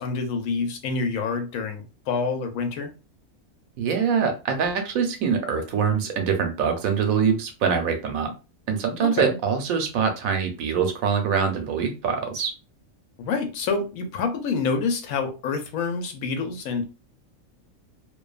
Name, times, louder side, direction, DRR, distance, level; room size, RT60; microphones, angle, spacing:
voice 1, 0.0-2.9 9.0-9.4 13.2-16.8, left 4 dB, 85° left, 1.1 m, -27 dB
voice 2, 3.8-8.3 8.7-12.5, right 6 dB, 90° right, 1.1 m, -24 dB
2.7 x 2.2 x 2.3 m
omnidirectional pair, 1.4 m